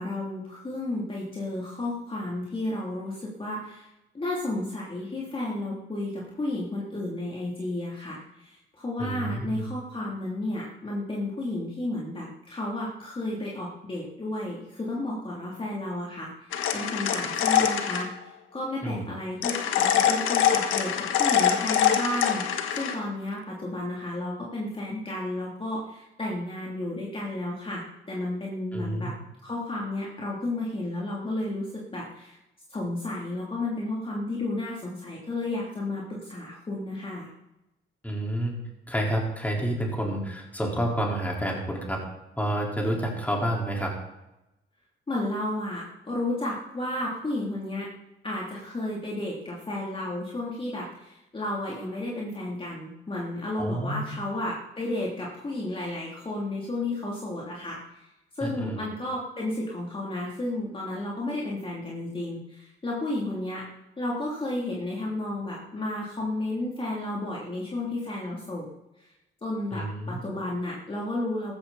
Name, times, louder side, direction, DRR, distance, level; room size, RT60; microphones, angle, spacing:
voice 1, 0.0-3.9 4.1-29.2 29.4-32.4 32.7-37.3 45.1-47.9 48.2-58.1 58.3-63.7 64.0-69.0 69.4-71.5, left 1 dB, 25° left, -4 dB, 3.2 m, -32 dB
voice 2, 9.0-9.7 18.8-19.0 28.7-29.1 38.0-38.5 38.9-42.0 42.4-43.9 53.6-54.2 58.4-58.8 69.7-70.2, right 1 dB, 10° left, -1 dB, 4.6 m, -29 dB
sound 1, 16.5-18.1 19.4-22.9, left 9 dB, 85° left, 1.5 m, -24 dB
14.5 x 14.0 x 4.3 m, 0.95 s
cardioid pair, 90°, 20 cm